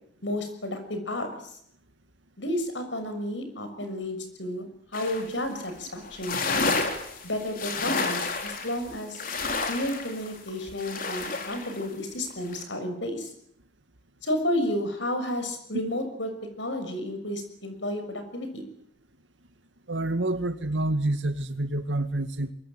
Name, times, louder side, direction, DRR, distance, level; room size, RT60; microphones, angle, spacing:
voice 1, 0.2-1.5 2.4-4.7 4.9-6.8 7.2-9.2 9.7-13.3 14.2-16.3 16.6-18.6, left 1 dB, 80° left, 8 dB, 6.5 m, -31 dB
sound 1, 4.9-5.3 5.6-5.7 6.0-11.8 12.3-12.6, left 3 dB, 50° left, 4.2 m, -30 dB
voice 2, 19.9-22.5, right 2 dB, 80° right, 10 dB, 2.1 m, -28 dB
23.5 x 23.0 x 9.0 m, 0.69 s
head